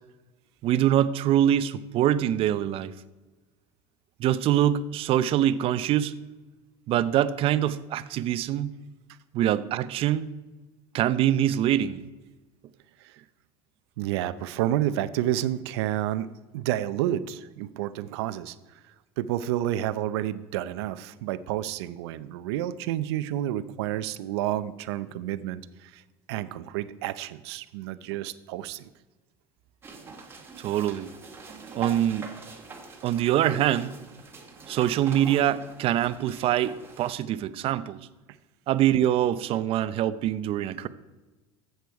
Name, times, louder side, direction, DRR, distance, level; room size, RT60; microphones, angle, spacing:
voice 1, 0.6-2.9 4.2-6.1 6.9-8.7 9.3-10.3 10.9-12.0 30.6-31.1 31.7-32.3 33.0-33.9 34.7-38.0 38.7-40.9, right 11 dB, 45° right, 15 dB, 0.6 m, -24 dB
voice 2, 14.0-16.3 16.5-18.6 19.2-26.0 26.3-28.9, right 13 dB, 90° right, 14 dB, 0.6 m, -30 dB
sound 1, 29.8-37.2, right 4 dB, 20° right, 1.7 m, -43 dB
13.5 x 8.0 x 4.7 m, 1.2 s
supercardioid pair, 130°, 13 cm